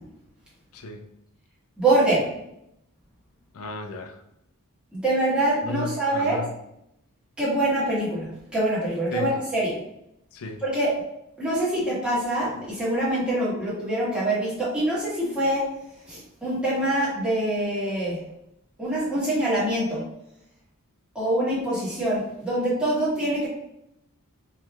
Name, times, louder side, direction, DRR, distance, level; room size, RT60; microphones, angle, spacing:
voice 1, 0.7-1.0 3.5-4.2 5.6-6.5 9.1-9.3 10.3-10.6, left 3 dB, 70° left, 6 dB, 0.5 m, -34 dB
voice 2, 1.8-2.3 4.9-6.4 7.4-9.8 10.6-10.9 11.4-15.7 16.1-18.2 18.8-20.0 21.1-23.5, right 1 dB, 5° right, -9 dB, 1.4 m, -24 dB
4.4 x 3.2 x 2.4 m, 0.80 s
head